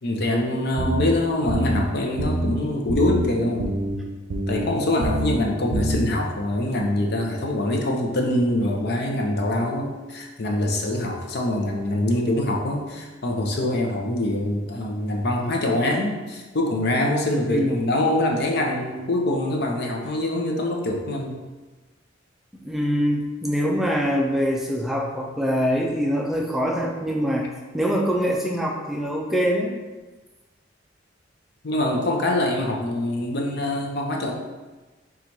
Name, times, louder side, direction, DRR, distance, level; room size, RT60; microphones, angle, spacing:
voice 1, 0.0-3.7 4.5-21.5 31.6-34.3, left 1 dB, 60° left, 1 dB, 0.6 m, -24 dB
sound 1, 0.8-1.1 1.5-1.8 2.2-2.5 2.9-3.3 3.6-4.0 4.3-4.7 5.0-5.4 5.7-6.1, right 1 dB, 75° right, 0.6 m, -25 dB
voice 2, 22.6-29.8, equal, ahead, -2 dB, 0.4 m, -24 dB
4.0 x 2.4 x 4.5 m, 1.2 s
head